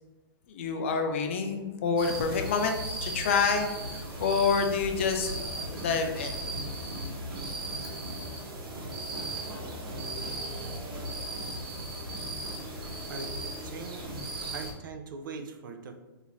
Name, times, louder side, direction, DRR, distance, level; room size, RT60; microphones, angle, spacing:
voice 1, 0.5-6.4, left 5 dB, 30° left, 4 dB, 0.4 m, -28 dB
sound 1, 2.0-14.7, right 1 dB, 80° right, 1.3 m, -37 dB
voice 2, 13.6-14.1 14.5-16.0, right 4 dB, 55° right, 7 dB, 0.5 m, -41 dB
5.4 x 2.7 x 3.0 m, 1.1 s
hypercardioid pair, 175°, 13 cm